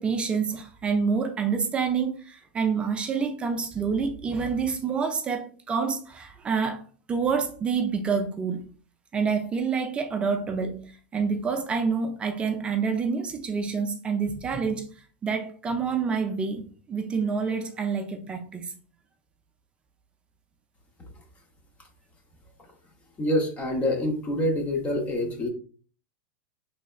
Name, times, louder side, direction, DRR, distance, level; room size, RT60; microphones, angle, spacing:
voice 1, 0.0-6.8 7.1-8.7 9.1-10.8 11.1-14.9 15.2-18.7, right 5 dB, 15° right, 0.4 m, -27 dB
voice 2, 23.2-25.5, left 1 dB, 20° left, 0.7 m, -26 dB
4.0 x 3.2 x 2.3 m
supercardioid pair, 145°, 6 cm